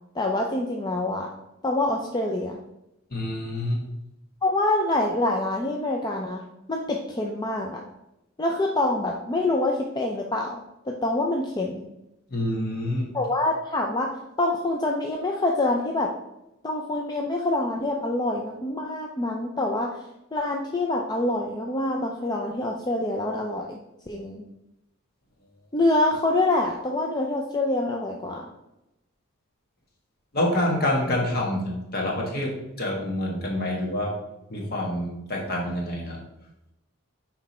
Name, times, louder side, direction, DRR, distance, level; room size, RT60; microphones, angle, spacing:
voice 1, 0.1-1.3 1.6-2.6 4.4-6.4 6.7-7.8 8.4-11.8 13.1-14.1 14.4-16.1 16.6-20.0 20.3-23.8 24.1-24.4 25.7-28.5, left 2 dB, 20° left, 1 dB, 0.4 m, -26 dB
voice 2, 3.1-3.8 12.3-13.1 30.3-34.2 34.5-36.2, left 1 dB, 45° left, -1 dB, 1.5 m, -27 dB
6.1 x 4.5 x 4.3 m, 0.90 s
head